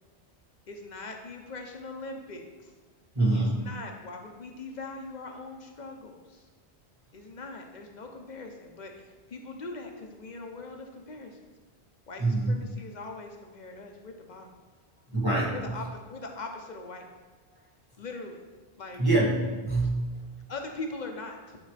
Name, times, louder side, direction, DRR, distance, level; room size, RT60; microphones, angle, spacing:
voice 1, 0.7-2.7 3.3-6.4 7.1-11.5 12.1-14.5 15.5-17.1 18.0-18.4 18.8-19.0 20.5-21.6, left 3 dB, 45° left, 3 dB, 0.8 m, -41 dB
voice 2, 3.1-3.7 12.2-12.6 15.1-15.6 19.0-20.3, right 2 dB, 25° right, -5 dB, 1.4 m, -25 dB
9.7 x 4.2 x 3.3 m, 1.3 s
omnidirectional pair, 1.1 m